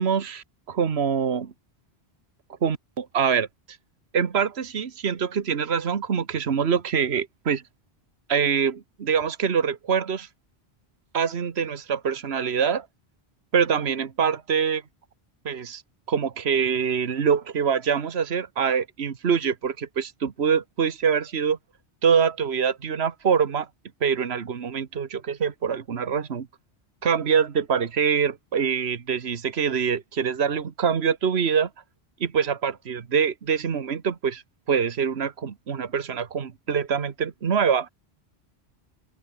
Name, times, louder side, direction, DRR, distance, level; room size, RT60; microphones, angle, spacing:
voice 1, 0.0-1.5 2.6-3.5 4.1-7.6 8.3-10.3 11.1-12.9 13.5-14.8 15.4-15.8 16.1-21.6 22.0-23.7 24.0-26.5 27.0-31.7 32.2-34.4 34.7-37.9, right 7 dB, 75° right, 1.5 m, -24 dB
open air
omnidirectional pair, 1.1 m